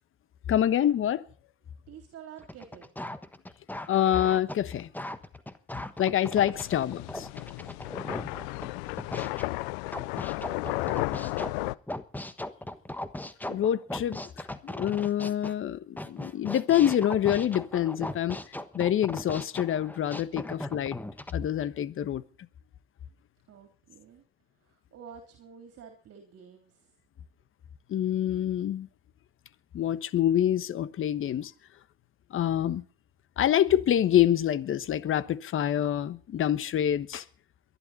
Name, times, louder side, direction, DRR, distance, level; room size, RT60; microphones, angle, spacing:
voice 1, 0.5-1.2 3.9-4.9 6.0-7.3 13.5-14.2 14.6-18.4 18.7-21.0 21.3-22.2 27.9-28.9 29.7-31.5 32.3-32.8 33.4-37.2, left 11 dB, 40° left, 1.2 m, -26 dB
voice 2, 1.9-2.9 6.5-6.7 8.3-9.4 10.0-11.8 20.3-20.4 23.5-24.2 24.6-26.9, right 7 dB, 50° right, 3.3 m, -50 dB
sound 1, 2.4-9.5 9.9-15.5 16.0-21.3, left 1 dB, 5° left, 1.3 m, -38 dB
sound 2, 6.5-11.7, left 22 dB, 80° left, 0.6 m, -33 dB
22.5 x 11.5 x 4.2 m
supercardioid pair, 100°, 32 cm